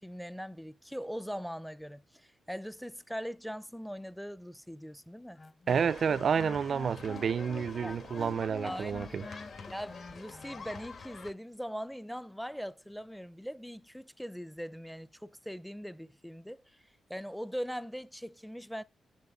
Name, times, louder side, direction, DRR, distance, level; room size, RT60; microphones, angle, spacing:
voice 1, 0.0-5.4 7.8-8.0 8.6-9.1 9.7-16.8 17.1-18.8, equal, ahead, 0.5 m, -41 dB
Wind instrument woodwind instrument, 5.4-10.7, left 3 dB, 35° left, 1.1 m, -47 dB
sound 1, 5.7-11.3, left 5 dB, 60° left, 1.9 m, -47 dB
voice 2, 5.7-9.2, right 7 dB, 60° right, 0.4 m, -30 dB
7.8 x 7.2 x 3.6 m
cardioid pair, 95°, 0 cm